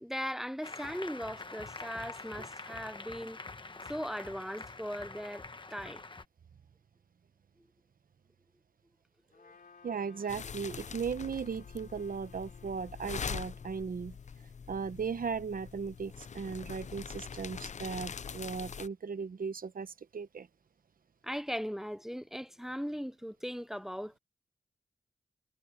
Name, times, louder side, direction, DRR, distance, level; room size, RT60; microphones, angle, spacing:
voice 1, 0.0-3.4 3.9-5.4 5.7-6.0 9.4-9.5 21.2-24.2, equal, 5° right, 0.6 m, -38 dB
Applause, 0.6-6.3, left 3 dB, 35° left, 1.2 m, -45 dB
Trumpet, 9.3-13.9, left 5 dB, 75° left, 3.7 m, -59 dB
voice 2, 9.8-14.1 14.7-20.5, right 6 dB, 70° right, 0.9 m, -37 dB
sound 1, 10.3-18.9, left 6 dB, 50° left, 0.5 m, -43 dB
wide cardioid pair, 80°, 15 cm